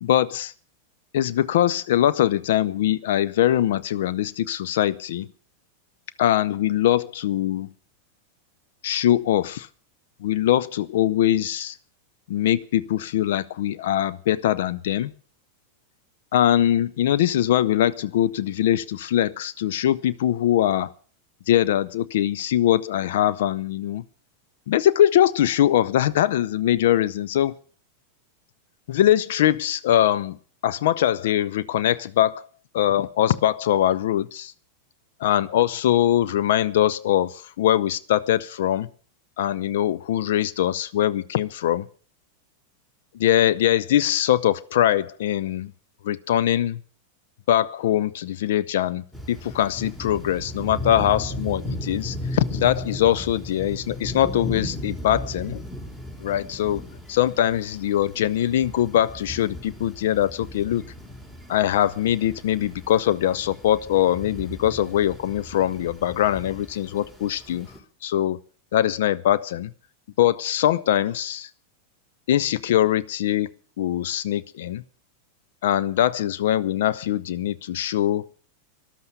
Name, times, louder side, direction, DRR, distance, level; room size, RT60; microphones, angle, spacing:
voice 1, 0.0-0.5 1.1-5.3 6.2-7.7 8.8-9.7 10.2-11.8 12.3-15.1 16.3-20.9 21.5-24.0 24.7-27.5 28.9-30.4 30.6-32.5 32.7-34.5 35.2-38.9 39.4-41.9 43.1-45.7 46.0-46.8 47.5-55.6 56.2-56.8 57.1-60.8 61.5-67.7 68.0-68.4 68.7-69.7 70.2-71.5 72.3-73.5 73.8-74.8 75.6-78.2, left 12 dB, 55° left, 0.6 m, -22 dB
sound 1, 49.1-67.8, left 1 dB, 10° left, 3.3 m, -36 dB
13.5 x 12.0 x 6.8 m
figure-of-eight pair, 90°, 0 cm